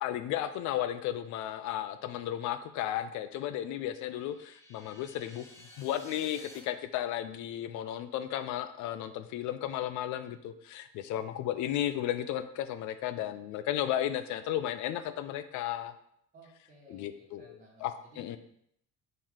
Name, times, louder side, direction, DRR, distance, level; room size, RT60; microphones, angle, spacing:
voice 1, 0.0-5.5 5.8-15.9 16.9-18.4, left 11 dB, 70° left, 11 dB, 0.4 m, -34 dB
sound 1, 3.9-6.6, left 1 dB, 10° left, 0.7 m, -54 dB
voice 2, 16.3-17.8 18.1-18.3, right 2 dB, 25° right, -6 dB, 1.3 m, -57 dB
4.5 x 3.1 x 3.7 m, 0.71 s
cardioid pair, 155°, 31 cm